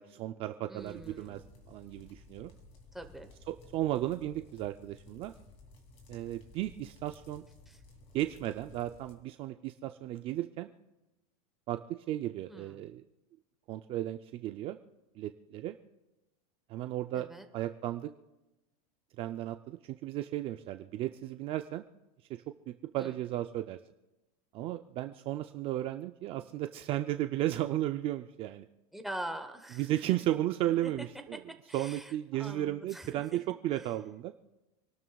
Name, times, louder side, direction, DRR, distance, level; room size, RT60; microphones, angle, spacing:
voice 1, 0.0-1.4 1.7-2.5 3.5-5.3 6.1-7.4 8.1-10.7 11.7-13.0 13.7-14.8 15.2-15.7 16.7-17.3 17.5-18.1 19.2-21.8 22.3-23.8 24.5-28.7 29.8-31.4 31.7-34.3, right 14 dB, 30° right, 8 dB, 0.4 m, -34 dB
voice 2, 0.7-1.4 2.9-3.3 7.7-7.8 12.5-12.8 17.1-17.5 23.0-23.1 28.9-30.1 30.8-30.9 31.7-33.1, right 1 dB, ahead, 5 dB, 1.0 m, -43 dB
sound 1, 0.8-9.1, left 2 dB, 30° left, 2.7 m, -56 dB
27.5 x 12.5 x 2.3 m, 1.0 s
supercardioid pair, 155°, 19 cm